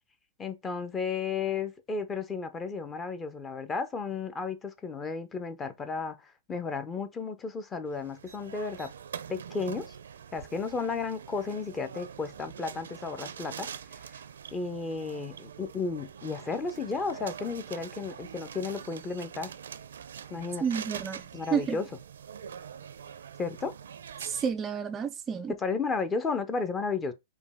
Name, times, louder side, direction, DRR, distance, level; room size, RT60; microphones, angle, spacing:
voice 1, 0.4-8.9 9.3-10.0 10.3-13.7 14.5-19.5 20.3-20.6 21.3-21.9 23.4-23.7 25.6-27.1, left 4 dB, 20° left, 0.6 m, -33 dB
sound 1, 7.9-24.5, right 8 dB, 80° right, 0.5 m, -44 dB
voice 2, 20.6-21.2 21.5-21.8 24.2-25.5, right 7 dB, 20° right, 0.3 m, -30 dB
5.2 x 2.2 x 3.5 m
hypercardioid pair, 130°, 0 cm